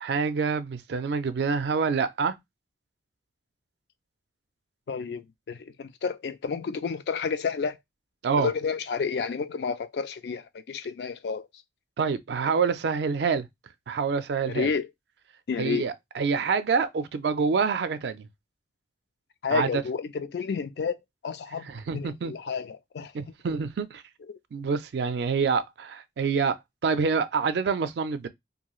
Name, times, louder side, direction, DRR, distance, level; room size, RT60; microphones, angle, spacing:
voice 1, 0.0-2.3 8.2-8.5 12.0-13.5 13.9-14.7 15.6-18.3 19.5-19.8 21.7-22.3 23.1-24.0 24.5-26.6 26.8-28.3, right 5 dB, 70° right, 0.4 m, -26 dB
voice 2, 4.9-7.8 8.4-11.4 14.5-14.9 15.5-15.9 19.4-21.0 21.2-21.7 21.9-23.1 24.3-24.4, left 5 dB, 65° left, 0.3 m, -30 dB
3.0 x 2.6 x 2.3 m
head